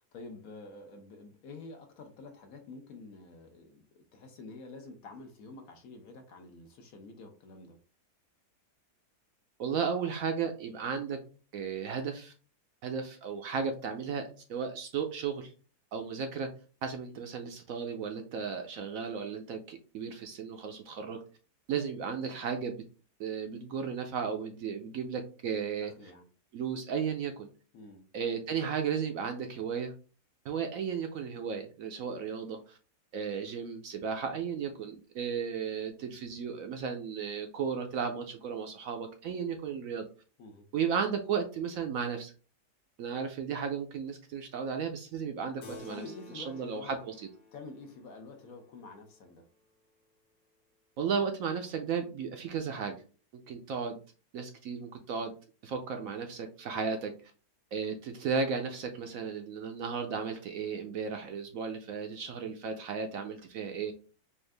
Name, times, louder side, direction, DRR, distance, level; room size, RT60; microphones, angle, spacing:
voice 1, 0.0-7.8 25.8-26.2 27.7-28.0 40.4-40.7 45.7-47.0 47.5-49.4, left 3 dB, 65° left, 5 dB, 1.2 m, -48 dB
voice 2, 9.6-11.2 11.5-12.3 12.8-15.5 15.9-16.5 16.8-21.2 21.7-22.8 23.2-25.9 26.5-27.5 28.1-29.9 30.4-32.8 33.1-40.0 40.7-42.3 43.0-46.0 46.4-47.3 51.0-53.0 53.5-54.0 54.3-55.3 55.6-57.1 57.7-63.9, right 6 dB, 70° right, 5 dB, 0.9 m, -34 dB
Keyboard (musical), 45.6-50.5, left 4 dB, 85° left, 1.3 m, -54 dB
4.5 x 2.5 x 3.3 m, 0.36 s
omnidirectional pair, 1.7 m